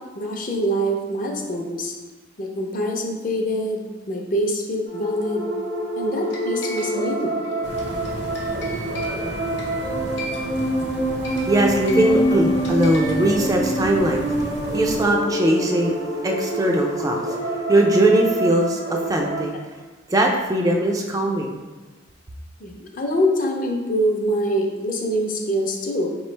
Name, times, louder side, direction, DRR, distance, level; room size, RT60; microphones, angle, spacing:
voice 1, 0.0-2.0 2.4-5.5 6.0-7.4 18.9-19.0 22.6-26.2, equal, 45° left, 1 dB, 0.6 m, -25 dB
sound 1, 4.8-19.4, right 1 dB, 90° right, 1.1 m, -26 dB
sound 2, 6.3-13.5, equal, 75° left, 0.9 m, -38 dB
sound 3, 7.6-15.0, right 1 dB, 60° right, 0.6 m, -34 dB
voice 2, 11.5-16.0 16.2-17.4 17.7-19.5 20.1-21.6, right 1 dB, 20° right, 1 dB, 0.3 m, -20 dB
4.5 x 3.1 x 3.2 m, 1.3 s
head